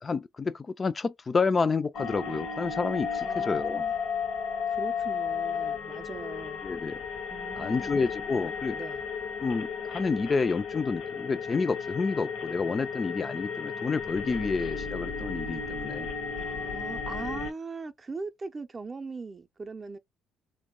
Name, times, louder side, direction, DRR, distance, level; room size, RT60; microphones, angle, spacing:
voice 1, 0.0-3.8 6.6-7.0 7.6-8.8 9.4-16.1, left 4 dB, 35° left, 0.3 m, -29 dB
sound 1, 1.9-17.5, left 6 dB, 70° left, 0.7 m, -34 dB
voice 2, 3.2-3.9 4.7-6.6 7.3-7.9 8.7-9.0 16.3-20.0, right 4 dB, 35° right, 0.5 m, -40 dB
2.8 x 2.1 x 3.6 m
hypercardioid pair, 50°, 0 cm